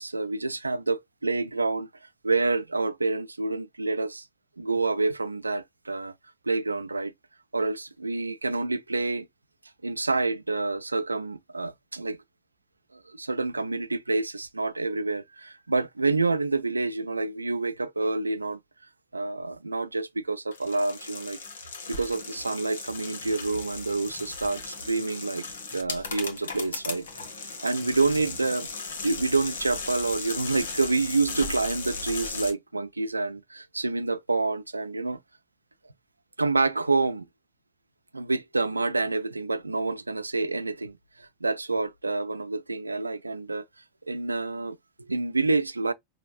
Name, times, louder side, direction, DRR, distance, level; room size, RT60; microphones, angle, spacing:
voice 1, 0.0-4.3 4.6-6.1 6.5-7.1 7.5-9.3 9.8-12.2 12.9-18.6 19.1-21.4 21.9-25.4 25.7-27.1 27.6-28.7 29.0-35.2 36.4-37.3 38.1-43.6 44.1-45.9, right 3 dB, 80° right, 0.4 m, -28 dB
sound 1, 20.5-32.5, left 4 dB, 65° left, 1.2 m, -37 dB
5.8 x 2.6 x 2.4 m
figure-of-eight pair, 90°, 0 cm